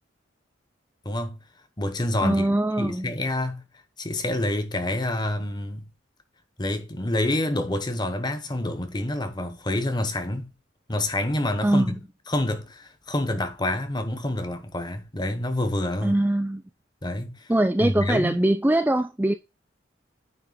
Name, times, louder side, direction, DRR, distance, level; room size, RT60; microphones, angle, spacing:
voice 1, 1.0-1.4 1.8-2.5 2.8-3.6 4.0-5.9 6.6-10.5 10.9-12.0 12.3-16.1 17.0-17.5 17.8-18.4, left 1 dB, 20° left, 1.0 m, -27 dB
voice 2, 2.2-3.1 11.6-11.9 16.0-16.6 17.5-19.3, right 1 dB, 10° right, 0.4 m, -22 dB
9.6 x 3.3 x 4.9 m
head